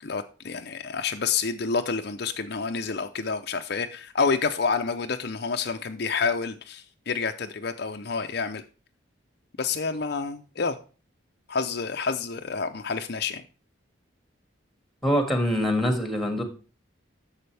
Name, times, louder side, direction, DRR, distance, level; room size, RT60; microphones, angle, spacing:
voice 1, 0.0-8.6 9.6-10.8 11.5-13.4, left 5 dB, 55° left, 7 dB, 0.6 m, -28 dB
voice 2, 15.0-16.4, equal, ahead, 5 dB, 1.9 m, -24 dB
11.0 x 7.3 x 3.4 m, 0.36 s
head